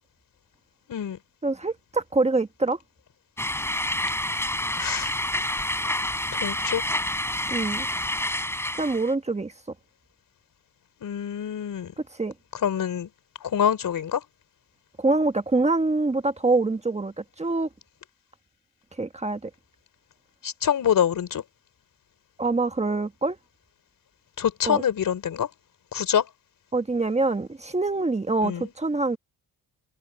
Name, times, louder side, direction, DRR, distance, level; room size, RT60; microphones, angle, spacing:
voice 1, 1.4-2.8 7.5-7.9 8.8-9.5 12.1-12.3 15.0-17.7 19.0-19.5 22.4-23.4 24.7-24.8 26.7-29.2, right 3 dB, 20° right, 1.4 m, -25 dB
sound 1, 3.4-9.1, left 1 dB, 5° left, 6.5 m, -28 dB
voice 2, 4.8-5.1 6.4-6.8 11.0-11.9 12.6-13.1 13.4-14.2 20.4-21.4 24.4-25.5 25.9-26.3 28.4-28.7, left 9 dB, 60° left, 4.2 m, -25 dB
cardioid pair, 90°, 36 cm